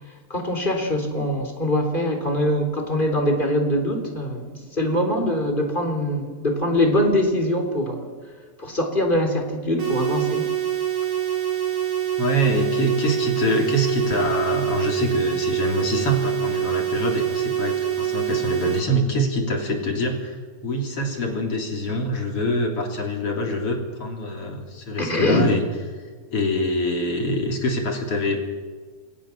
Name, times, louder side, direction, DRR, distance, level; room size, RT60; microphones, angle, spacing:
voice 1, 0.3-8.1 8.6-10.5 25.0-25.5, left 1 dB, 15° left, 3 dB, 3.3 m, -23 dB
sound 1, 9.8-18.8, right 11 dB, 60° right, 4.9 m, -25 dB
voice 2, 12.2-25.6 25.9-26.0 26.3-28.6, left 1 dB, 40° left, 2 dB, 3.9 m, -25 dB
28.0 x 20.5 x 7.3 m, 1.5 s
omnidirectional pair, 4.2 m